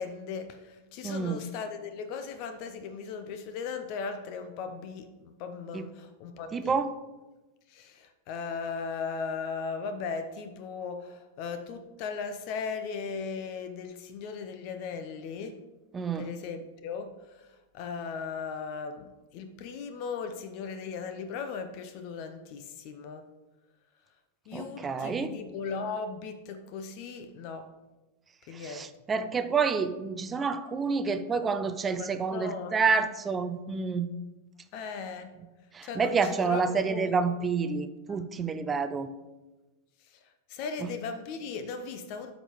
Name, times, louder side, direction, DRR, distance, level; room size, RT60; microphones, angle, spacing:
voice 1, 0.0-6.8 7.7-15.6 16.1-17.5 17.7-23.3 24.5-27.7 28.5-28.9 32.0-33.1 34.7-35.3 35.8-37.1 38.1-38.2 40.5-42.3, left 5 dB, 45° left, 9 dB, 0.5 m, -37 dB
voice 2, 1.0-1.4 5.7-5.8 6.5-6.9 15.9-16.3 24.5-25.4 28.5-34.1 35.7-39.1, right 5 dB, 20° right, 10 dB, 0.4 m, -28 dB
12.5 x 5.2 x 3.1 m, 1.1 s
figure-of-eight pair, 90°, 0 cm